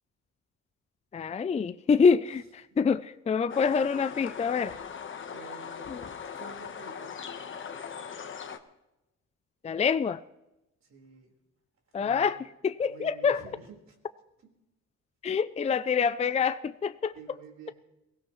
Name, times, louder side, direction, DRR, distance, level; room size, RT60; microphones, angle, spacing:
voice 1, 1.1-4.7 5.9-6.0 9.6-10.2 11.9-12.4 12.6-13.4 15.2-17.1, left 6 dB, 20° left, 14 dB, 0.4 m, -26 dB
sound 1, 3.5-8.6, left 6 dB, 40° left, 1.2 m, -40 dB
voice 2, 5.3-6.0 6.3-7.2 10.8-11.3 11.9-12.4 12.8-14.0 14.4-14.5 17.1-17.7, right 5 dB, 60° right, 1 dB, 4.4 m, -49 dB
22.5 x 16.5 x 3.2 m, 0.96 s
cardioid pair, 90°, 30 cm